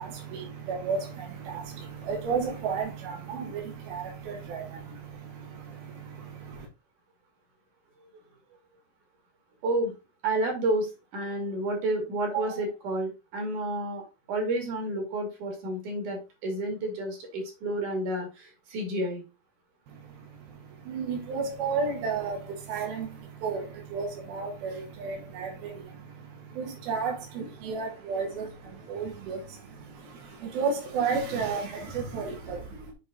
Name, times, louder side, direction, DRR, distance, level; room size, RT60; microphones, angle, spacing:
voice 1, 0.0-6.7 19.9-20.0 20.8-32.9, right 5 dB, 85° right, 3.5 m, -33 dB
voice 2, 9.6-9.9 10.2-14.0 14.3-19.2, right 2 dB, 60° right, 3.8 m, -30 dB
7.6 x 5.3 x 4.1 m
omnidirectional pair, 4.2 m